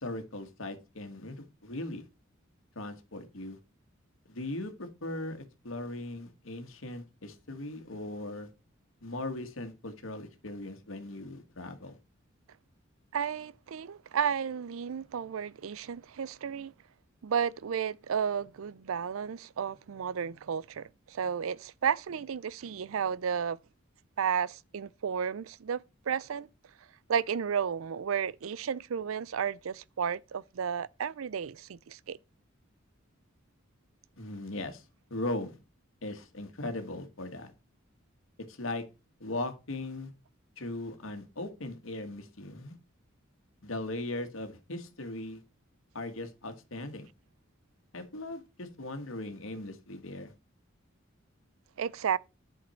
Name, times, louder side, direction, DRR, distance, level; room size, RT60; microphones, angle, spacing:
voice 1, 0.0-2.0 2.8-3.6 4.3-8.5 9.0-12.0 34.2-34.9 35.1-35.6 36.0-37.5 38.5-38.8 39.2-40.1 40.6-42.8 43.6-45.4 45.9-47.1 47.9-50.3, left 2 dB, 75° left, 1.8 m, -38 dB
voice 2, 13.1-16.7 17.2-23.6 24.2-26.5 27.1-32.2 51.8-52.2, right 7 dB, 80° right, 0.4 m, -32 dB
11.0 x 6.5 x 4.4 m
head